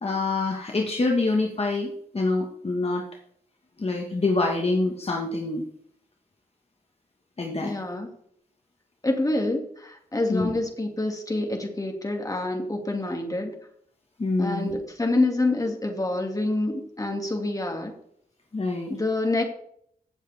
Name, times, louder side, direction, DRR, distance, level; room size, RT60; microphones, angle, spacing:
voice 1, 0.0-3.0 3.8-5.6 7.4-7.7 10.3-10.5 14.2-14.7 18.5-18.9, left 3 dB, 40° left, 0 dB, 1.5 m, -26 dB
voice 2, 7.6-8.1 9.0-13.5 14.4-17.9 18.9-19.4, left 2 dB, 20° left, 2 dB, 2.4 m, -27 dB
16.5 x 7.4 x 3.5 m, 0.67 s
wide cardioid pair, 105°, 16 cm